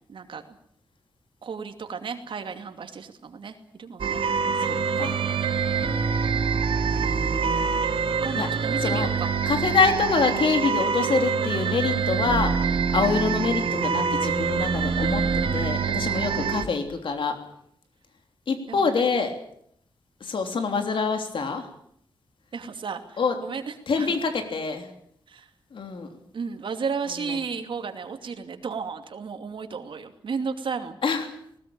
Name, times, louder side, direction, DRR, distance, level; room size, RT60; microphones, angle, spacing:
voice 1, 0.1-0.6 1.4-5.0 5.8-6.6 8.2-9.3 16.0-16.6 18.7-19.0 22.5-24.2 25.3-25.5 26.3-31.0, right 5 dB, 70° right, 6 dB, 2.6 m, -34 dB
sound 1, 4.0-16.6, right 5 dB, 85° right, 2.2 m, -25 dB
voice 2, 4.6-5.2 6.9-7.8 8.3-8.5 8.8-9.1 9.4-17.3 18.5-19.3 20.2-21.7 23.2-23.3 23.9-24.9 25.7-26.1 27.3-27.4 31.0-31.3, left 5 dB, 70° left, 5 dB, 3.3 m, -26 dB
20.0 x 19.5 x 9.0 m, 0.69 s
wide cardioid pair, 165°, 9 cm